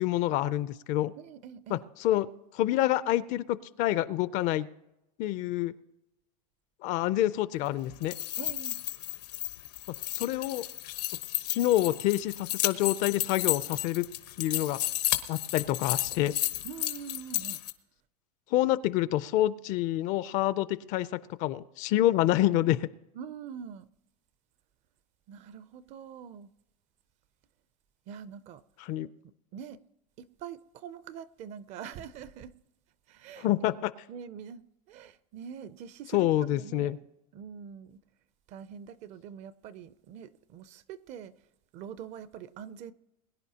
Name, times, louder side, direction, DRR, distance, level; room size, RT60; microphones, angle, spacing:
voice 1, 0.0-1.1 1.7-2.3 2.5-4.7 5.2-5.7 6.8-8.1 10.1-10.7 11.5-14.1 14.4-14.8 15.3-16.3 18.5-21.1 21.4-22.8 28.8-29.1 33.4-33.9 36.1-37.0, left 14 dB, 40° left, 0.4 m, -27 dB
voice 2, 1.2-1.8 8.4-8.8 16.6-17.6 23.1-23.9 25.3-26.5 28.1-28.6 29.5-29.8 30.2-32.5 33.1-33.8 34.1-37.0 37.3-38.0 38.5-41.3 41.7-42.9, right 8 dB, 35° right, 0.5 m, -44 dB
sound 1, 7.9-17.7, left 15 dB, 90° left, 1.2 m, -33 dB
21.5 x 10.5 x 2.8 m
supercardioid pair, 150°, 20 cm